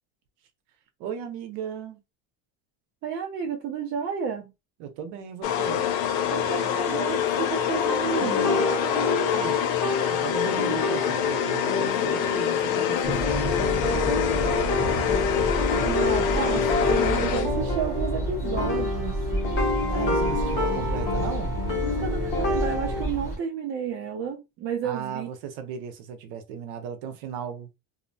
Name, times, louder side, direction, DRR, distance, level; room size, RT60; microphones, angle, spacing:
voice 1, 1.0-2.0 4.8-5.9 9.3-9.6 10.0-15.1 19.9-21.6 24.8-27.7, right 7 dB, 85° right, 0.8 m, -36 dB
voice 2, 3.0-4.5 6.3-8.5 9.4-9.5 15.8-19.3 21.9-25.3, right 7 dB, 35° right, 0.4 m, -31 dB
sound 1, 5.4-17.8, left 9 dB, 75° left, 0.6 m, -26 dB
sound 2, 7.9-23.0, left 2 dB, 30° left, 0.9 m, -29 dB
sound 3, 13.0-23.4, right 1 dB, 5° right, 0.7 m, -30 dB
2.7 x 2.1 x 2.6 m
cardioid pair, 180°, 37 cm